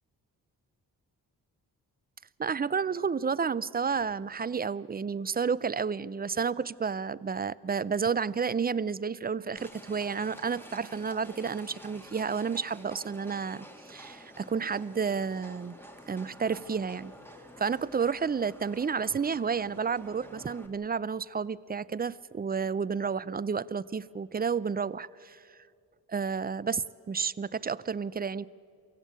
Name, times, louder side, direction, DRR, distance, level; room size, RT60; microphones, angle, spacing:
voice 1, 2.4-15.8 16.1-17.1 17.6-25.4 26.1-28.5, right 6 dB, 25° right, 19 dB, 0.5 m, -31 dB
Livestock farm animals working animals, 9.6-20.7, equal, 5° left, 2.1 m, -50 dB
24.0 x 16.0 x 8.3 m, 2.4 s
supercardioid pair, 55°, 40 cm